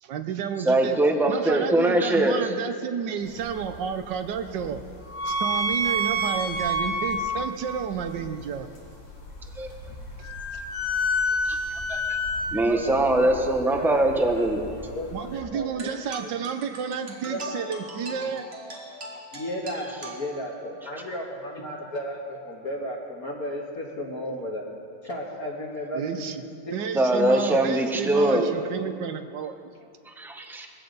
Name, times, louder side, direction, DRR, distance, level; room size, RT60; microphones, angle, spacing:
voice 1, 0.0-1.0 1.3-4.8 5.2-8.7 10.2-10.3 15.1-18.5 25.9-26.4 26.7-29.5, right 7 dB, 75° right, 8 dB, 1.4 m, -31 dB
voice 2, 0.6-2.4 9.6-9.7 11.5-12.0 12.5-14.6 26.9-28.5 30.1-30.7, right 1 dB, ahead, 3 dB, 0.5 m, -22 dB
sound 1, 3.2-15.4, equal, 80° left, 2.8 m, -30 dB
voice 3, 12.7-14.6 14.8-16.5 17.2-17.7 18.3-18.5 18.7-18.8 19.1-24.6 25.0-26.8 29.8-29.9, equal, 50° left, -4 dB, 2.0 m, -35 dB
sound 2, 15.8-20.8, right 2 dB, 35° right, 1.5 m, -41 dB
20.0 x 15.5 x 4.0 m, 2.4 s
omnidirectional pair, 2.0 m